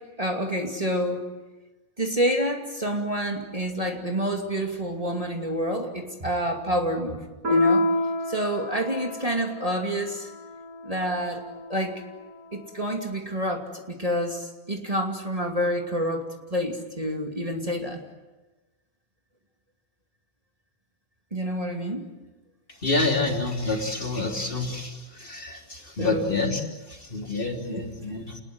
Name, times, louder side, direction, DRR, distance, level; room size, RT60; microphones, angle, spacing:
voice 1, 0.2-1.2 2.0-7.9 8.3-10.3 10.8-11.4 11.7-12.0 12.5-16.2 16.5-18.0 21.3-22.0 26.0-26.3 27.6-27.8, equal, 25° right, 2 dB, 2.7 m, -28 dB
Piano, 7.4-12.4, left 2 dB, 80° right, 8.3 m, -28 dB
voice 2, 22.8-28.4, left 3 dB, 40° left, 2 dB, 3.5 m, -28 dB
29.0 x 20.5 x 9.5 m, 1.2 s
omnidirectional pair, 1.5 m